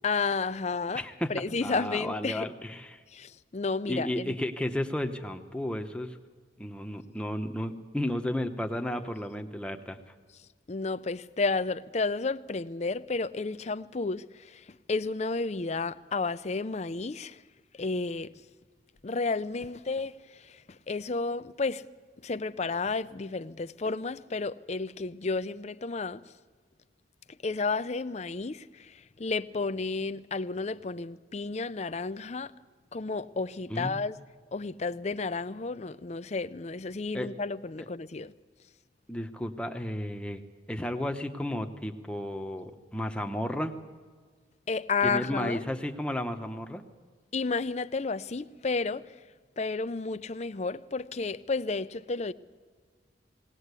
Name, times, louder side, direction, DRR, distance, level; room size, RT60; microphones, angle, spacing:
voice 1, 0.0-1.0 1.3-2.5 3.1-4.4 10.7-17.4 17.7-18.3 19.0-21.8 22.2-26.2 27.4-32.5 32.9-34.2 34.5-38.3 44.7-45.6 47.3-49.1 49.6-52.3, left 4 dB, 35° left, 0.5 m, -32 dB
voice 2, 0.9-1.3 1.6-3.0 3.9-6.2 6.6-10.0 33.7-34.0 37.1-37.3 39.1-40.4 40.7-43.8 45.0-46.8, left 1 dB, 5° left, 1.0 m, -33 dB
20.0 x 18.5 x 8.3 m
head